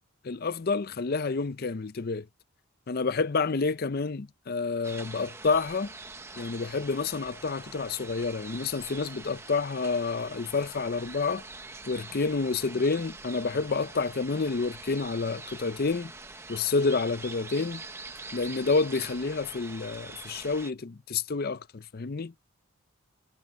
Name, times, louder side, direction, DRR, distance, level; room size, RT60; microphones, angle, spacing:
voice 1, 0.2-2.3 2.9-5.9 6.4-11.4 11.9-16.1 16.5-17.8 18.3-22.3, left 4 dB, 45° left, 0.5 m, -29 dB
sound 1, 4.8-20.7, right 3 dB, 10° right, 1.0 m, -44 dB
head